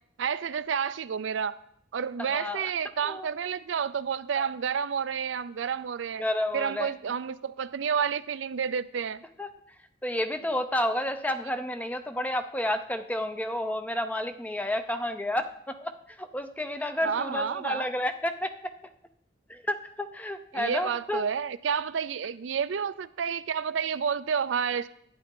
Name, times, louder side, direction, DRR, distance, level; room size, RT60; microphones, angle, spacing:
voice 1, 0.2-1.5 1.9-6.2 6.5-9.2 17.0-17.9 20.5-24.9, right 7 dB, 85° right, 14 dB, 0.4 m, -30 dB
voice 2, 2.2-2.7 3.0-3.3 4.4-4.5 6.2-6.9 9.4-9.5 10.0-15.9 16.2-18.5 19.5-21.3, left 1 dB, 10° left, 9 dB, 0.5 m, -30 dB
11.5 x 9.2 x 3.7 m, 0.71 s
head